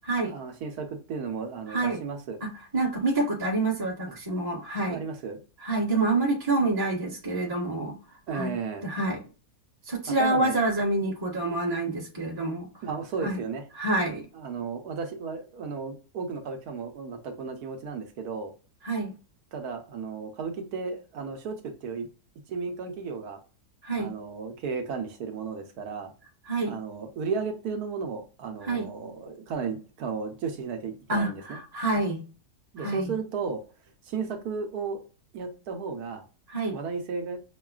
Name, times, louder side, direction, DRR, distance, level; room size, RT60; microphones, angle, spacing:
voice 1, 0.3-2.4 4.1-4.2 4.9-5.4 8.3-8.9 10.2-10.6 12.8-13.7 14.3-18.5 19.5-22.1 22.5-23.4 24.0-26.1 26.6-31.6 32.7-33.6 34.1-35.1 35.3-36.2 36.7-37.4, right 5 dB, 70° right, 1.2 m, -34 dB
voice 2, 1.7-2.0 2.4-5.0 5.6-8.0 8.3-8.5 8.8-9.2 9.9-12.7 13.2-13.4 13.7-14.3 18.8-19.1 23.8-24.1 26.5-26.7 28.6-28.9 31.1-32.2 32.8-33.1 36.5-36.8, right 2 dB, 15° right, 1.0 m, -27 dB
6.2 x 2.2 x 2.3 m
omnidirectional pair, 1.7 m